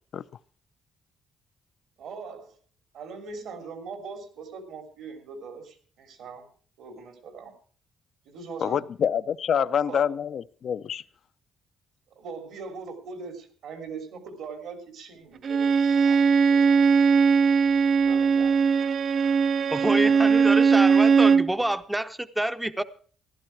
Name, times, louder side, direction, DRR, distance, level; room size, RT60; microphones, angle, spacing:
voice 1, 2.0-2.6 2.9-6.4 6.8-7.5 8.2-8.8 9.5-10.0 12.1-16.9 18.0-18.6, right 5 dB, 80° right, 3.1 m, -41 dB
voice 2, 8.6-11.0, left 8 dB, 60° left, 0.5 m, -26 dB
Bowed string instrument, 15.4-21.5, right 5 dB, 55° right, 0.6 m, -20 dB
voice 3, 19.7-22.8, right 1 dB, 10° right, 0.6 m, -27 dB
15.0 x 12.0 x 4.7 m
cardioid pair, 90°, 0 cm